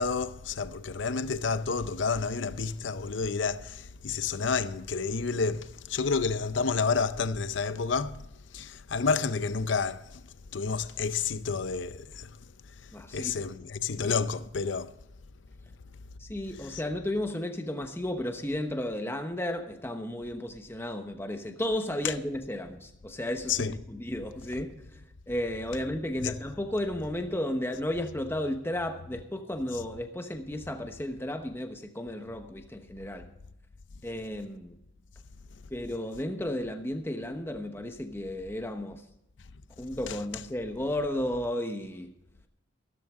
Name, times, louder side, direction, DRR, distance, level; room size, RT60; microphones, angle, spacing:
voice 1, 0.0-8.2 8.5-10.2 10.5-12.3 13.1-14.9 16.7-16.8 22.0-22.1 23.5-23.7 26.2-26.3, left 5 dB, 75° left, 0.6 m, -30 dB
voice 2, 12.9-13.3 13.9-14.0 16.2-25.0 25.3-33.3 34.0-34.8 35.7-39.0 39.8-42.1, left 1 dB, 15° left, 1.0 m, -33 dB
14.0 x 13.5 x 3.7 m
head